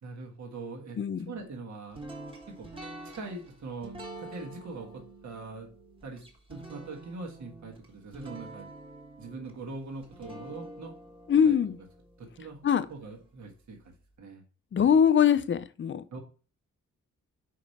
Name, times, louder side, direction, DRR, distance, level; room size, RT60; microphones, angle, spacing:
voice 1, 0.0-1.0 1.3-2.0 2.5-2.7 3.1-5.7 6.0-6.2 6.5-8.7 9.2-10.9 11.4-11.6 12.2-12.6 12.9-14.4 16.1-16.2, right 3 dB, 65° right, 1.5 m, -42 dB
sound 1, 1.9-13.0, right 2 dB, 15° right, 1.4 m, -47 dB
voice 2, 11.3-11.8 12.6-12.9 14.7-16.0, left 8 dB, 40° left, 0.4 m, -22 dB
5.1 x 4.9 x 4.1 m
wide cardioid pair, 135°, 31 cm